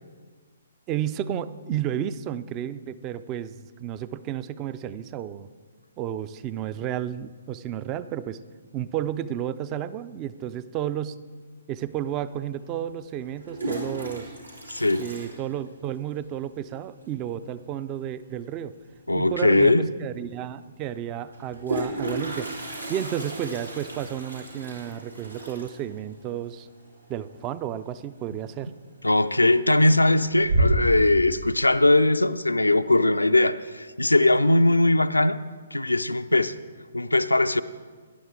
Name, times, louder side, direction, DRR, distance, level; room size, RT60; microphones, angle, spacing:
voice 1, 0.9-5.5 6.0-8.4 8.7-11.2 11.7-14.3 15.0-18.8 19.2-22.5 22.9-26.7 27.1-28.7, right 10 dB, 25° right, 15 dB, 0.4 m, -32 dB
Toilet flush, 11.9-12.0 13.2-16.1 16.3-16.4 16.7-16.8 17.1-17.5 19.2-19.3 19.6-19.7 21.3-28.0 28.3-28.7 29.1-29.7 30.1-31.1, right 1 dB, 90° right, 3.1 m, -31 dB
voice 2, 14.7-15.0 19.1-19.9 29.0-35.4 35.7-36.5 36.9-37.6, left 2 dB, 85° left, 11 dB, 0.4 m, -20 dB
17.5 x 10.5 x 3.7 m, 1.5 s
figure-of-eight pair, 130°, 0 cm